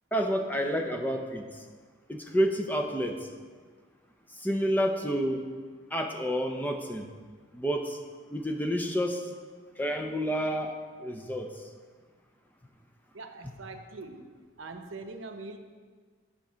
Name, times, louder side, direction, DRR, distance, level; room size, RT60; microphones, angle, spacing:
voice 1, 0.1-1.6 2.1-3.3 4.4-5.5 5.9-7.1 7.5-8.0 8.3-9.3 9.8-11.6, equal, 10° left, 4 dB, 0.5 m, -29 dB
voice 2, 13.1-14.3 14.6-15.6, right 3 dB, 80° right, 6 dB, 0.8 m, -42 dB
9.5 x 5.0 x 6.2 m, 1.5 s
head